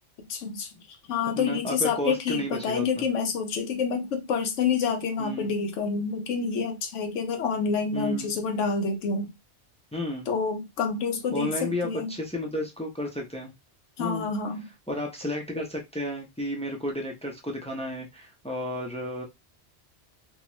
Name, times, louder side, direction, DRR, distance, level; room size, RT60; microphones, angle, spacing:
voice 1, 0.3-0.7 1.1-9.3 10.3-12.1 14.0-14.7, left 5 dB, 90° left, 1.0 m, -28 dB
voice 2, 1.4-3.0 5.2-5.5 7.9-8.3 9.9-10.3 11.3-13.5 14.0-14.3 14.9-19.2, left 1 dB, 10° left, 0.3 m, -32 dB
2.7 x 2.3 x 2.9 m
omnidirectional pair, 1.2 m